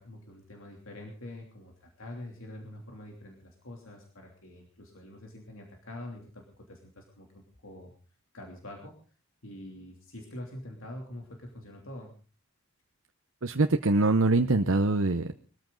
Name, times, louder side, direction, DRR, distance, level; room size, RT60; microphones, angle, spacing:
voice 1, 0.0-7.9 8.3-8.9 9.4-12.1, left 1 dB, 70° left, 1 dB, 3.0 m, -45 dB
voice 2, 13.4-15.3, right 2 dB, 65° right, 6 dB, 0.8 m, -24 dB
21.5 x 14.0 x 3.9 m, 0.38 s
head